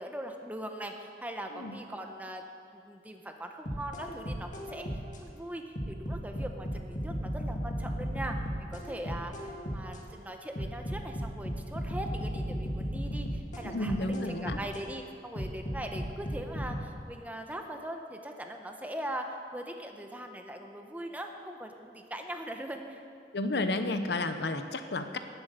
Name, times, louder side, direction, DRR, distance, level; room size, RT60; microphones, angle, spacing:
voice 1, 0.0-2.4 2.7-23.0, right 1 dB, 10° right, 4 dB, 0.9 m, -41 dB
sound 1, 3.7-5.2 5.8-10.0 10.6-14.8 15.4-16.8, equal, 45° left, 1.7 m, -35 dB
voice 2, 13.6-14.6 23.3-25.2, left 2 dB, 70° left, 8 dB, 0.8 m, -31 dB
18.0 x 7.8 x 6.7 m, 2.4 s
head